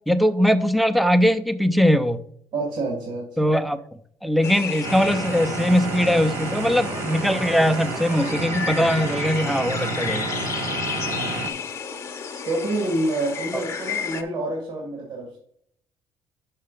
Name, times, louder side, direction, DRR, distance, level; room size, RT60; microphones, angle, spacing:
voice 1, 0.1-2.2 3.4-3.8 4.2-10.3, equal, ahead, 11 dB, 0.5 m, -20 dB
voice 2, 2.5-3.5 10.3-10.5 11.1-11.4 12.5-15.4, right 2 dB, 60° right, -1 dB, 1.9 m, -28 dB
sound 1, 4.4-14.2, left 6 dB, 35° left, 0.9 m, -32 dB
sound 2, 4.8-11.5, right 4 dB, 85° right, 1.0 m, -30 dB
5.7 x 5.5 x 5.1 m, 0.68 s
cardioid pair, 120°, 9 cm